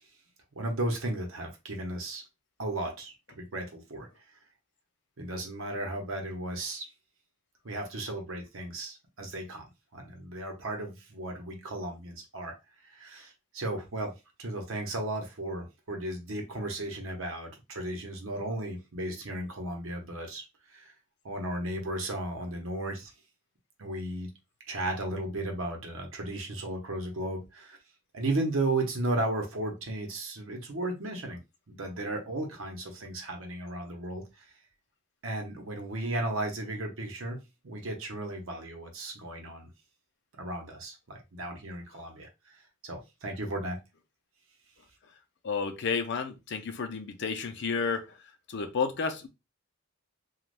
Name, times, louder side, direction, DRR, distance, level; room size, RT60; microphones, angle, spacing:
voice 1, 0.6-2.2 2.6-4.1 5.2-6.9 7.6-9.6 9.9-12.5 12.9-14.1 14.4-20.4 20.7-20.9 21.2-23.1 23.8-24.3 24.7-27.8 28.1-31.4 31.7-34.2 35.2-37.4 37.6-39.7 40.4-42.3 42.8-43.8, right 1 dB, 75° right, 0.8 m, -35 dB
voice 2, 45.4-48.2 48.5-49.3, left 5 dB, 60° left, 0.5 m, -31 dB
3.3 x 2.3 x 2.4 m
head